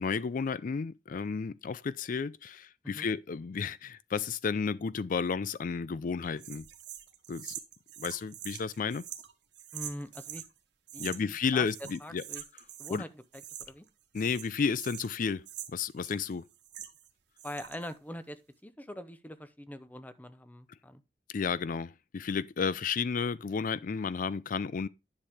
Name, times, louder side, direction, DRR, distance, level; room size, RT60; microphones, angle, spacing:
voice 1, 0.0-6.7 7.3-7.6 8.0-9.0 11.0-12.2 12.9-13.0 14.1-15.4 15.7-16.5 21.3-24.9, left 5 dB, 50° left, 0.4 m, -32 dB
sound 1, 6.4-10.5 10.9-11.4 11.6-13.0 13.3-13.9 14.1-17.1 17.4-17.9, right 11 dB, 75° right, 1.3 m, -45 dB
voice 2, 9.7-10.4 10.9-11.7 12.0-12.4 12.8-13.8 17.4-21.0, left 1 dB, 10° left, 0.7 m, -43 dB
10.5 x 6.6 x 3.5 m
head